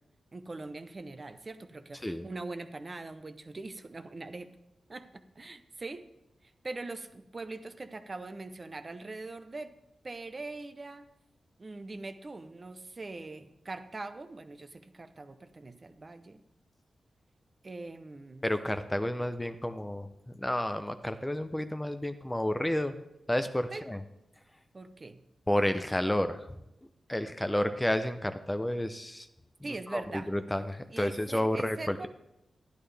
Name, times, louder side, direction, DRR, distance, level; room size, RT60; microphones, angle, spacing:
voice 1, 0.3-4.5 4.9-6.1 6.4-9.7 10.0-11.1 11.6-16.4 17.6-18.4 23.7-23.9 24.7-25.2 29.6-30.3 30.9-32.1, right 3 dB, 35° right, 10 dB, 0.7 m, -42 dB
voice 2, 18.4-23.0 23.3-24.0 25.5-26.5 27.1-29.3 29.9-32.0, left 1 dB, 10° left, 10 dB, 0.5 m, -31 dB
11.5 x 10.5 x 3.4 m, 0.87 s
wide cardioid pair, 90°, 0 cm